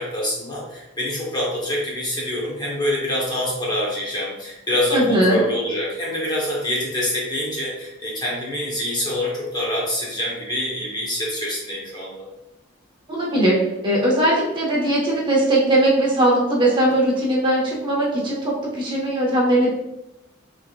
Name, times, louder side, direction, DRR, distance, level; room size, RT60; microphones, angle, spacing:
voice 1, 0.0-12.3, left 1 dB, 20° left, -4 dB, 1.0 m, -25 dB
voice 2, 4.9-5.4 13.1-13.6 13.8-19.7, right 1 dB, 25° right, -4 dB, 1.2 m, -19 dB
5.8 x 3.5 x 2.4 m, 0.90 s
head